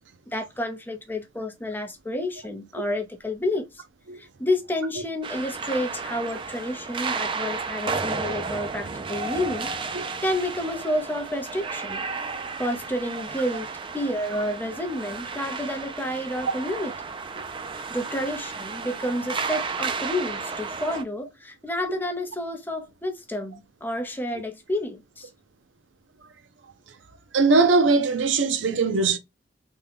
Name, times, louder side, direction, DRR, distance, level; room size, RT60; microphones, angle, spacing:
voice 1, 0.3-3.8 4.1-9.7 10.0-12.0 12.6-13.7 13.9-16.9 17.7-25.3, left 1 dB, 10° left, 0.6 m, -30 dB
sound 1, 5.2-21.0, right 4 dB, 25° right, 0.3 m, -33 dB
voice 2, 27.3-29.2, right 3 dB, 80° right, 0.5 m, -20 dB
3.5 x 2.2 x 3.3 m
head